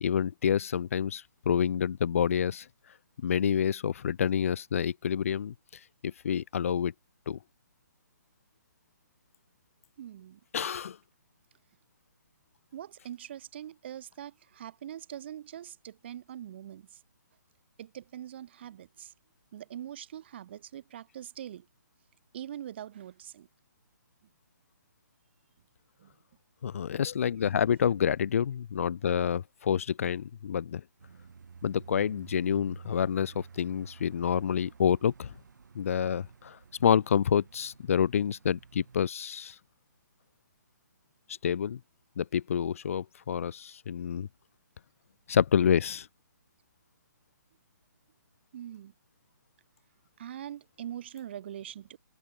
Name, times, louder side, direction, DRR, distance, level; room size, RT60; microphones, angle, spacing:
voice 1, 0.0-2.7 3.2-5.5 6.0-6.9 7.3-7.4 10.5-11.0 26.6-30.8 31.6-35.3 35.7-39.6 41.4-41.8 42.2-44.3 45.3-46.1, left 8 dB, 45° left, 1.1 m, -28 dB
voice 2, 10.0-10.4 12.7-17.0 17.8-19.1 19.5-21.7 22.3-23.5 26.0-26.1 48.5-48.9 50.2-52.0, right 11 dB, 35° right, 1.4 m, -43 dB
sound 1, 31.0-39.1, right 5 dB, 75° right, 5.6 m, -51 dB
hypercardioid pair, 170°, 10 cm